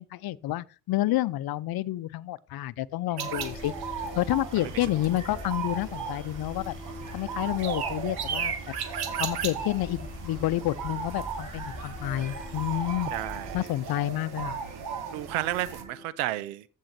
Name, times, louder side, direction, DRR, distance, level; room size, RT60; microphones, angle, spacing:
voice 1, 0.0-3.7 4.2-6.7 7.1-8.5 9.2-13.1 13.5-14.6, left 15 dB, 55° left, 0.7 m, -29 dB
sound 1, 3.1-16.1, right 2 dB, 40° right, 4.6 m, -46 dB
sound 2, 3.2-15.8, right 7 dB, 60° right, 2.1 m, -36 dB
sound 3, 3.4-13.6, left 2 dB, 20° left, 2.7 m, -43 dB
voice 2, 4.6-4.9 12.1-12.5 13.1-13.7 15.1-16.7, right 15 dB, 80° right, 0.9 m, -33 dB
15.0 x 6.5 x 4.3 m
hypercardioid pair, 50°, 43 cm